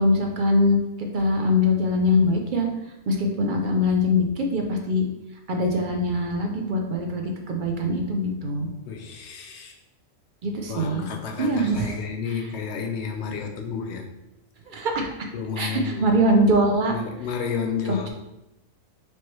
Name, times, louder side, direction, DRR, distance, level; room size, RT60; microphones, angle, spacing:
voice 1, 0.0-2.7 3.1-5.0 5.5-8.7 10.4-11.0 11.4-12.0 12.3-12.4 14.7-15.1 15.6-16.9 17.9-18.1, left 1 dB, 60° right, 2 dB, 0.5 m, -23 dB
voice 2, 8.9-9.8 10.7-14.1 15.3-16.2 16.9-18.1, left 6 dB, 65° left, 3 dB, 0.8 m, -31 dB
4.5 x 3.0 x 3.0 m, 0.91 s
omnidirectional pair, 1.4 m